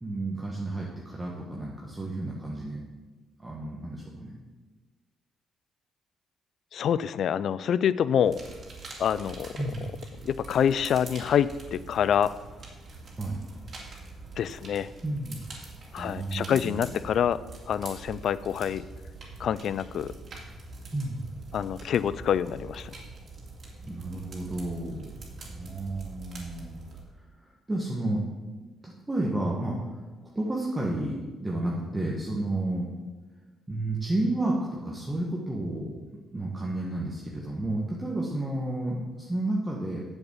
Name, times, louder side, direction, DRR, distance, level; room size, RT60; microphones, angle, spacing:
voice 1, 0.0-2.8 3.4-4.3 9.6-9.9 13.2-13.4 15.0-15.4 15.8-16.9 20.9-21.2 23.9-25.1 25.5-26.8 27.4-28.2 28.8-29.8 30.3-32.9 33.7-35.9 36.3-40.0, right 2 dB, 15° right, -4 dB, 1.7 m, -31 dB
voice 2, 6.7-8.4 9.0-9.5 10.2-12.3 14.4-14.9 15.9-17.4 17.7-18.9 19.4-20.1 21.5-22.9, left 9 dB, 65° left, 17 dB, 0.4 m, -26 dB
sound 1, 8.2-27.0, right 3 dB, 50° right, 2.5 m, -44 dB
8.0 x 7.2 x 7.2 m, 1.3 s
cardioid pair, 90°, 0 cm